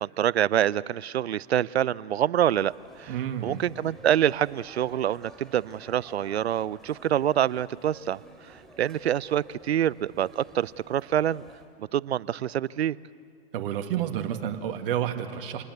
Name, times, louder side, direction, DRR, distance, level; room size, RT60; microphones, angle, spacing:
voice 1, 0.0-2.7 3.0-3.1 3.4-8.2 8.5-11.4 11.8-13.0, right 11 dB, 90° right, 21 dB, 0.6 m, -26 dB
sound 1, 2.5-11.7, right 1 dB, ahead, 3.5 m, -52 dB
voice 2, 3.1-3.6 13.5-15.6, right 10 dB, 60° right, 5 dB, 2.1 m, -30 dB
27.5 x 20.0 x 8.0 m, 2.3 s
hypercardioid pair, 120°, 31 cm